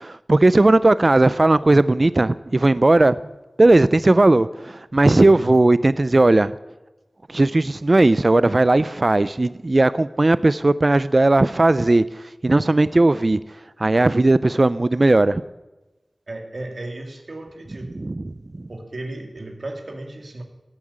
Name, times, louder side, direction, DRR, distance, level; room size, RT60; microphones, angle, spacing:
voice 1, 0.0-3.1 3.6-6.5 7.3-12.0 12.4-13.4 13.8-15.4 17.9-18.3, right 2 dB, 45° right, 0.4 m, -17 dB
voice 2, 16.3-17.9 18.7-20.4, right 2 dB, 70° right, 2.5 m, -34 dB
17.5 x 8.8 x 8.7 m
wide cardioid pair, 65°, 0 cm